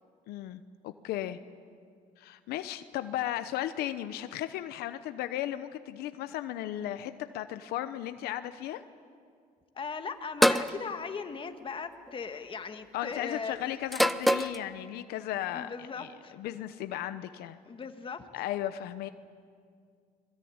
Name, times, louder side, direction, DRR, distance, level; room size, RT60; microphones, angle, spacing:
voice 1, 0.3-1.4 2.2-8.8 12.9-16.1 16.4-17.6 18.3-19.1, left 12 dB, 90° left, 10 dB, 0.9 m, -35 dB
voice 2, 9.8-13.6 15.5-16.4 17.6-18.2, left 5 dB, 35° left, 7 dB, 1.8 m, -38 dB
sound 1, 10.4-10.7 11.9-12.3 13.9-14.6, equal, ahead, 0.8 m, -24 dB
26.0 x 21.5 x 8.8 m, 2.2 s
cardioid pair, 110°, 16 cm